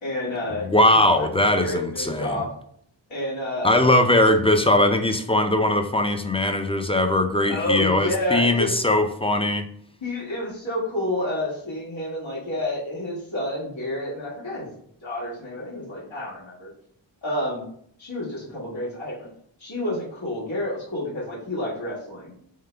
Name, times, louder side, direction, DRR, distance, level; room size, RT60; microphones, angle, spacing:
voice 1, 0.0-0.7 1.2-2.5 3.1-3.8 7.5-8.8 10.0-14.7 15.0-16.7 17.2-17.7 18.0-19.3 19.6-22.3, left 1 dB, 90° left, -7 dB, 1.8 m, -29 dB
voice 2, 0.6-2.4 3.6-9.7, left 1 dB, 15° left, 6 dB, 0.4 m, -20 dB
4.3 x 3.7 x 3.3 m, 0.65 s
wide cardioid pair, 80°, 45 cm